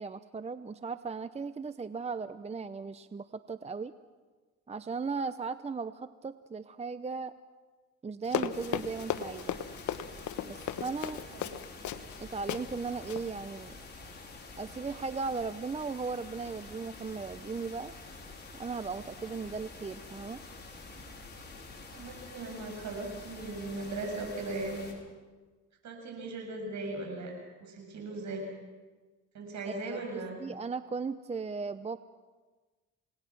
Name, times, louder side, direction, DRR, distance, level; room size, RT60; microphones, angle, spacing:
voice 1, 0.0-3.9 4.7-7.3 8.0-9.6 10.4-11.2 12.2-13.7 14.6-17.9 18.5-20.4 29.7-30.0 30.4-32.0, right 4 dB, 20° right, 13 dB, 0.7 m, -37 dB
Run, 8.3-12.2 12.5-12.6 13.0-13.2, left 10 dB, 75° left, 1.1 m, -35 dB
sound 1, 8.5-24.9, left 3 dB, 35° left, 4.9 m, -48 dB
voice 2, 21.9-24.9 25.8-27.3 27.6-28.5 29.3-30.4, right 2 dB, 65° right, 2 dB, 7.6 m, -38 dB
28.5 x 19.0 x 6.2 m, 1.3 s
cardioid pair, 90°, 30 cm